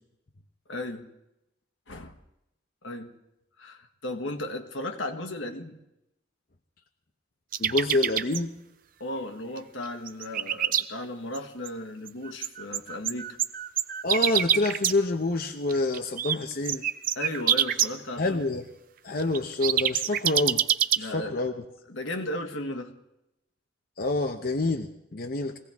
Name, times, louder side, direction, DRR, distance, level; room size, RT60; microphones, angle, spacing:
voice 1, 0.7-1.0 1.9-2.1 2.8-3.1 3.6-5.8 9.0-13.4 17.1-18.5 21.0-21.4 21.9-22.9, left 1 dB, 75° left, 6 dB, 1.5 m, -35 dB
sound 1, 7.5-8.4 9.6-9.7 9.9-10.8 11.3-11.4 11.7-11.8 12.1-14.9 15.7-16.4 16.6-17.9 19.2-21.0, right 10 dB, 45° right, 0.5 m, -25 dB
voice 2, 7.6-8.5 14.0-16.8 18.2-18.7 19.0-20.6 21.0-21.5 24.0-25.6, left 2 dB, 50° left, 4 dB, 0.8 m, -27 dB
22.5 x 17.0 x 3.6 m, 0.87 s
head